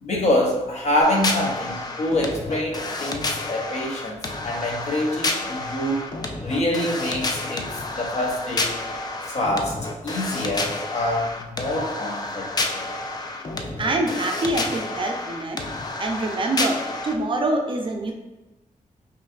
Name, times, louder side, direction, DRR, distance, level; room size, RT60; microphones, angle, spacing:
voice 1, 0.0-6.1 6.4-9.8 10.0-12.8, left 1 dB, 50° left, 0 dB, 0.8 m, -26 dB
sound 1, 1.0-17.1, left 2 dB, 30° left, 0.3 m, -30 dB
voice 2, 13.8-15.6 16.0-18.1, right 2 dB, 40° right, 2 dB, 0.5 m, -25 dB
5.4 x 2.5 x 2.4 m, 1.0 s
wide cardioid pair, 145°, 14 cm